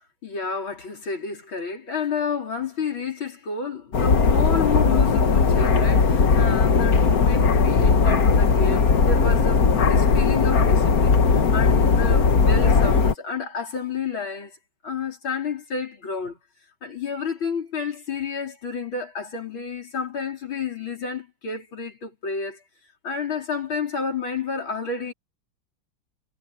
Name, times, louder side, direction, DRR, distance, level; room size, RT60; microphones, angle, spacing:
voice 1, 0.2-14.6 14.8-16.4 16.8-22.6 23.0-25.1, left 5 dB, 70° left, 5.1 m, -30 dB
sound 1, 3.9-13.1, left 5 dB, 50° left, 1.7 m, -18 dB
omnidirectional pair, 2.3 m